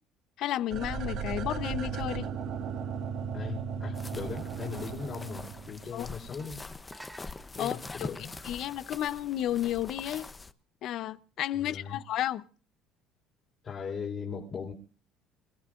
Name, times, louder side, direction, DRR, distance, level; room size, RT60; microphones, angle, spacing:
voice 1, 0.4-2.3 5.9-6.1 7.6-10.3 10.8-12.5, left 12 dB, 60° left, 0.8 m, -32 dB
sound 1, 0.7-5.9 6.2-6.3, right 6 dB, 60° right, 1.9 m, -36 dB
voice 2, 3.3-6.6 7.5-8.3 11.6-12.0 13.6-14.7, left 6 dB, 40° left, 4.1 m, -38 dB
sound 2, 3.9-10.5, left 3 dB, 15° left, 0.8 m, -44 dB
sound 3, 5.8-5.9 6.4-9.2, right 1 dB, 5° right, 2.5 m, -53 dB
28.5 x 17.0 x 2.5 m
cardioid pair, 110°, 0 cm